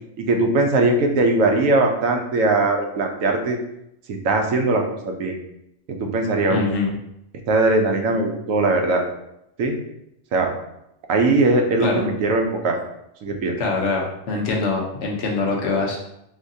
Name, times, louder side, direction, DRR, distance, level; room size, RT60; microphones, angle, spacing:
voice 1, 0.2-3.6 4.1-5.4 6.0-6.6 7.5-9.0 9.6-9.8 10.3-10.5 11.1-12.8 13.2-13.6, right 2 dB, 85° right, 3 dB, 1.0 m, -20 dB
voice 2, 6.5-6.9 11.8-12.0 13.6-16.0, left 3 dB, 65° left, -1 dB, 1.0 m, -24 dB
3.6 x 3.1 x 2.6 m, 0.81 s
omnidirectional pair, 1.3 m